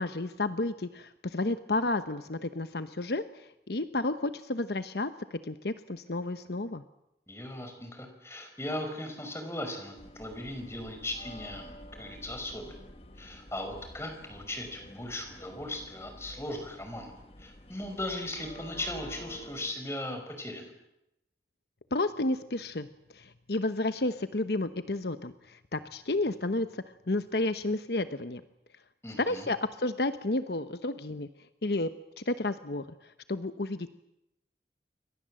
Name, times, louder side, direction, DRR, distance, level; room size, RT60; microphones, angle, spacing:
voice 1, 0.0-6.8 21.9-22.9 23.1-28.4 29.2-31.3 31.6-33.9, left 2 dB, 65° left, 11 dB, 1.0 m, -31 dB
voice 2, 7.3-12.8 13.2-17.1 17.4-20.7 29.0-29.5, left 1 dB, 15° left, 5 dB, 5.4 m, -38 dB
sound 1, 9.9-19.7, left 1 dB, 35° left, 1.5 m, -49 dB
29.0 x 23.5 x 7.7 m, 0.88 s
head